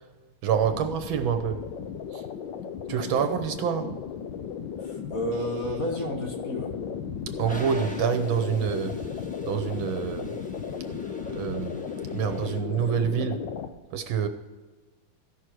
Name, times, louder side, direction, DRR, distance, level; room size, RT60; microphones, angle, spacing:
voice 1, 0.4-1.6 2.1-2.2 2.9-3.9 7.3-9.1 9.4-10.4 11.3-13.5 13.9-14.3, right 8 dB, 70° right, 1.4 m, -27 dB
sound 1, 0.5-13.7, left 7 dB, 70° left, 1.3 m, -35 dB
voice 2, 4.8-6.7, equal, 40° left, 2.0 m, -32 dB
Toilet flush, 7.4-12.6, right 2 dB, 5° left, 0.7 m, -45 dB
15.0 x 6.2 x 4.6 m
omnidirectional pair, 2.4 m